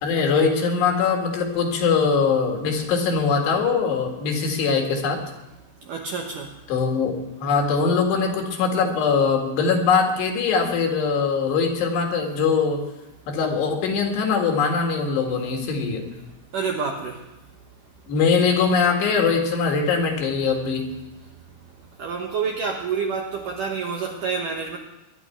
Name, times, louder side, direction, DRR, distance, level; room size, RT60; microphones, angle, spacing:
voice 1, 0.0-5.2 6.7-7.2 7.4-12.8 13.3-16.1 18.1-20.9, left 5 dB, 70° left, 2 dB, 4.0 m, -22 dB
voice 2, 5.9-6.5 16.5-17.2 22.0-24.8, right 5 dB, 70° right, 1 dB, 2.0 m, -28 dB
22.0 x 11.0 x 4.5 m, 0.98 s
omnidirectional pair, 5.2 m